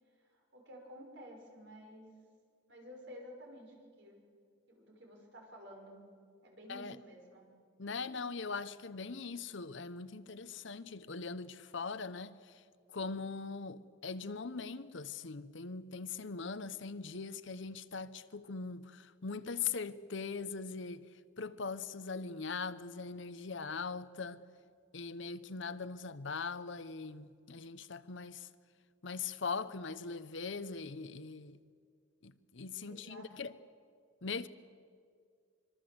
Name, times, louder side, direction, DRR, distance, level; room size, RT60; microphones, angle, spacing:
voice 1, 0.2-2.1 2.7-4.2 4.7-6.0 6.4-7.4 32.8-33.3, equal, 60° right, 5.9 m, -52 dB
voice 2, 7.8-12.6 12.9-21.1 21.4-24.4 24.9-28.5 29.0-31.6 32.2-33.5 34.2-34.5, left 4 dB, 65° left, 0.8 m, -41 dB
25.0 x 24.5 x 7.9 m
head